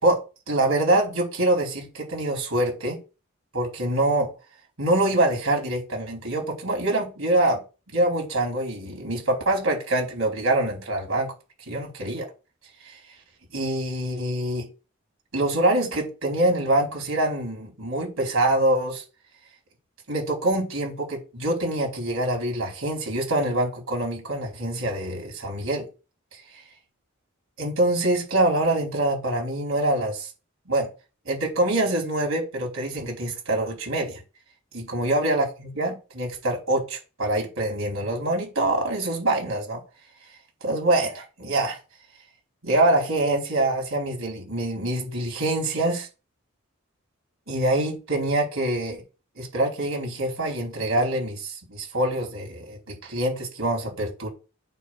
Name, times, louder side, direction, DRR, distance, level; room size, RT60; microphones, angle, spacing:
voice 1, 0.0-3.0 3.5-4.3 4.8-7.6 7.9-11.3 11.7-12.3 12.8-13.0 13.5-14.7 15.3-19.0 20.1-25.9 26.5-26.6 27.6-30.3 30.7-30.9 31.2-34.2 34.7-39.8 40.6-41.8 42.6-46.1 47.5-49.0 49.4-54.3, right 1 dB, 85° right, 4.7 m, -25 dB
9.2 x 3.6 x 6.4 m
head